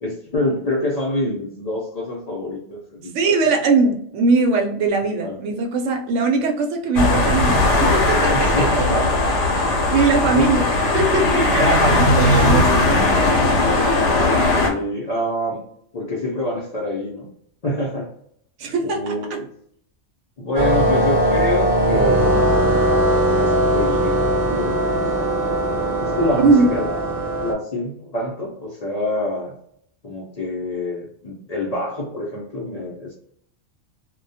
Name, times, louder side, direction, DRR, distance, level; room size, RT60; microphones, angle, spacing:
voice 1, 0.0-3.2 5.2-5.4 8.3-9.0 10.3-10.7 11.5-12.6 13.4-13.7 14.6-15.6 15.9-17.3 17.6-18.1 18.8-19.5 20.4-22.5 23.3-24.2 24.5-25.0 26.0-27.1 27.4-29.5 30.0-33.1, left 1 dB, 50° left, -3 dB, 0.5 m, -26 dB
voice 2, 3.1-8.7 9.9-10.7 10.9-13.0 18.6-19.4 26.4-26.7, right 3 dB, 80° right, 3 dB, 0.9 m, -20 dB
sound 1, 7.0-14.7, left 2 dB, 75° left, 1.0 m, -18 dB
sound 2, 20.5-27.5, right 1 dB, 45° right, 0.6 m, -19 dB
2.3 x 2.1 x 2.6 m, 0.69 s
omnidirectional pair, 1.2 m